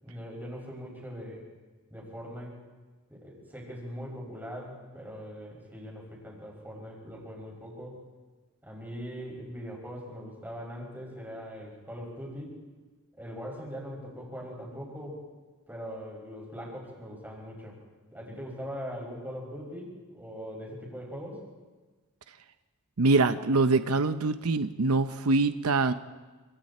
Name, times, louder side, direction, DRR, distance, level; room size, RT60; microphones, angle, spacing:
voice 1, 0.0-1.4 1.9-2.5 3.1-8.0 8.6-12.6 13.2-15.2 15.7-17.8 18.1-21.4, equal, 10° right, -2 dB, 6.4 m, -41 dB
voice 2, 23.0-25.9, right 3 dB, 80° right, 10 dB, 0.8 m, -24 dB
28.5 x 26.5 x 4.4 m, 1.3 s
head